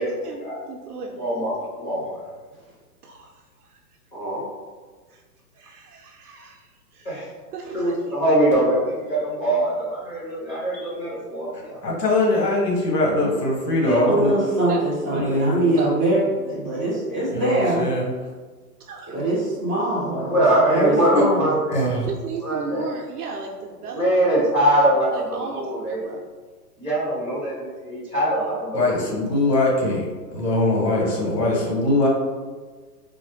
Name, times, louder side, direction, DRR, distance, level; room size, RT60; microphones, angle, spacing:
voice 1, 0.0-1.3 3.0-3.8 5.1-5.2 5.6-7.2 7.5-8.2 14.7-15.4 15.8-15.9 18.8-19.3 21.9-24.1 24.9-26.2, right 4 dB, 70° right, 0 dB, 0.6 m, -35 dB
voice 2, 1.2-1.5 1.8-2.1 4.1-4.4 7.0-7.2 7.7-11.8 20.3-21.9 22.4-22.9 23.9-26.0 26.8-29.0, right 1 dB, 15° left, -10 dB, 0.9 m, -22 dB
voice 3, 11.8-14.3 15.1-15.6 17.3-18.0 21.1-21.3 21.7-22.1 28.7-30.0 30.3-32.1, left 2 dB, 80° left, -2 dB, 1.5 m, -21 dB
voice 4, 13.8-17.9 19.1-21.6, right 1 dB, 10° right, -15 dB, 0.5 m, -23 dB
4.0 x 2.1 x 3.1 m, 1.4 s
hypercardioid pair, 160°, 47 cm